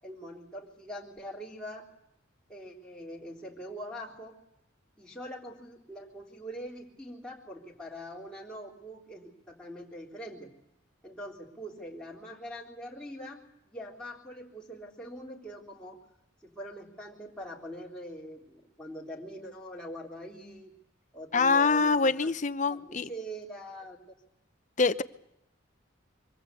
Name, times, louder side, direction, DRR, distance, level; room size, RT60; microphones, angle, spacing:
voice 1, 0.0-1.9 2.5-4.4 5.0-10.5 11.0-16.1 16.4-20.7 21.1-22.3 22.7-24.0, equal, 5° left, -4 dB, 3.6 m, -43 dB
voice 2, 21.3-23.1 24.8-25.0, left 4 dB, 40° left, 12 dB, 0.8 m, -25 dB
24.5 x 18.5 x 8.4 m, 0.83 s
head